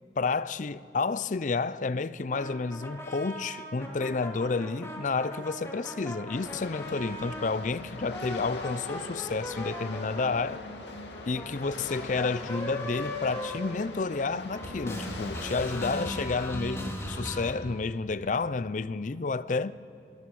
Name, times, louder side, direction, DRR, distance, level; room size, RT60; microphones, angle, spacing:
voice 1, 0.2-10.6 11.3-19.7, left 4 dB, 45° left, 0.5 m, -30 dB
sound 1, 2.3-7.5 7.9-14.2 14.5-17.5, left 1 dB, 15° left, 2.8 m, -39 dB
sound 2, 6.3-16.2, left 2 dB, 90° left, 2.5 m, -42 dB
22.5 x 22.5 x 6.2 m
head